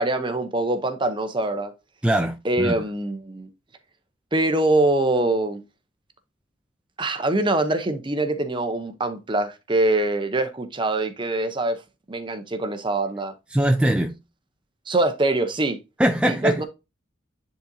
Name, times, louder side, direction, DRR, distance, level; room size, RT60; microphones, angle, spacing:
voice 1, 0.0-1.7 2.4-3.5 4.3-5.6 7.0-11.8 12.1-13.3 14.9-15.8 16.3-16.6, right 2 dB, 25° right, 0.8 m, -23 dB
voice 2, 2.0-2.8 13.5-14.1 16.0-16.6, right 1 dB, 5° right, 0.4 m, -21 dB
10.0 x 3.9 x 2.7 m
head